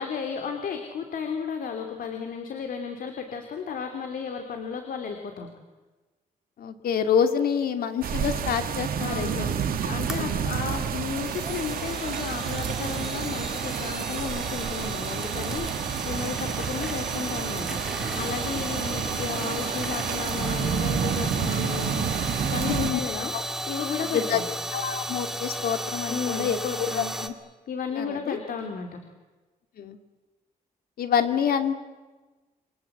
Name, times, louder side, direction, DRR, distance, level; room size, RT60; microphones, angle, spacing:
voice 1, 0.0-5.5 9.0-17.8 18.1-22.1 22.4-23.3 23.7-24.5 26.1-27.1 27.7-29.0, left 6 dB, 70° left, 5 dB, 3.3 m, -33 dB
voice 2, 6.6-9.5 9.8-10.4 22.7-23.0 23.3-23.4 24.1-24.4 24.7-27.3 27.9-28.4 29.8-30.0 31.0-31.7, left 7 dB, 85° left, 7 dB, 2.7 m, -27 dB
sound 1, 8.0-22.9, right 8 dB, 75° right, 2.3 m, -30 dB
sound 2, 10.1-27.3, right 1 dB, 5° right, 1.9 m, -35 dB
29.0 x 24.5 x 8.2 m, 1.2 s
wide cardioid pair, 170°, 15 cm